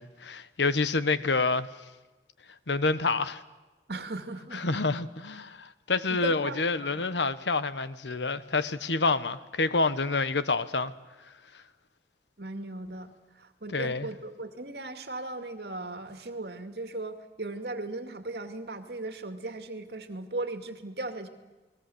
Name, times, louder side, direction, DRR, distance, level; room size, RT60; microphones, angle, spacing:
voice 1, 0.0-1.7 2.7-3.4 4.5-10.9 13.7-14.1, left 3 dB, 85° left, 1.2 m, -28 dB
voice 2, 3.9-4.7 6.1-7.1 12.4-21.3, right 2 dB, 65° right, 2.4 m, -37 dB
29.5 x 20.5 x 7.9 m
head